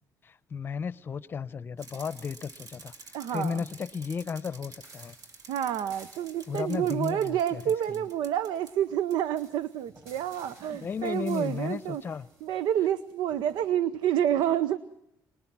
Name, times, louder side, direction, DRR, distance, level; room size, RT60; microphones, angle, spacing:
voice 1, 0.2-5.2 6.5-8.1 10.4-12.3, left 6 dB, 30° left, 0.7 m, -34 dB
Bicycle, 1.8-8.7 9.1-9.2, right 4 dB, 55° right, 2.7 m, -50 dB
voice 2, 3.1-3.6 5.5-12.0 12.4-14.8, right 10 dB, 85° right, 0.8 m, -28 dB
sound 1, 4.8-13.7, right 2 dB, 30° right, 5.2 m, -58 dB
26.0 x 20.5 x 6.0 m
cardioid pair, 155°, 7 cm